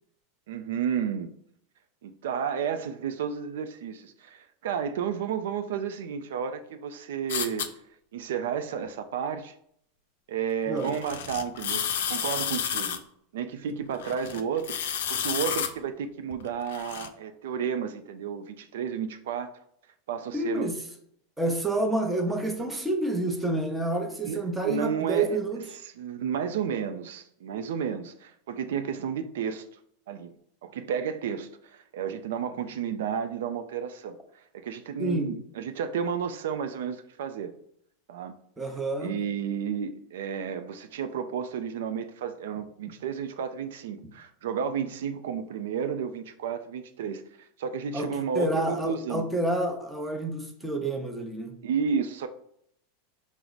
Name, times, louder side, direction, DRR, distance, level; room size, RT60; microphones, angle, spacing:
voice 1, 0.5-1.3 2.0-7.7 8.1-9.5 10.3-13.0 13.3-19.5 20.1-20.7 24.2-25.4 25.7-29.7 30.1-30.3 30.6-37.5 38.1-38.3 39.0-47.2 47.6-49.3 51.6-52.3, right 7 dB, 80° right, 0.4 m, -32 dB
sound 1, 7.3-7.7 10.7-13.0 13.9-15.7 16.3-17.1, left 8 dB, 80° left, 0.4 m, -31 dB
voice 2, 20.3-20.7 21.4-25.6 35.0-35.3 38.6-39.2 47.9-48.1 48.3-51.5, right 2 dB, 5° right, 0.6 m, -28 dB
4.4 x 2.0 x 3.9 m
supercardioid pair, 135°, 0 cm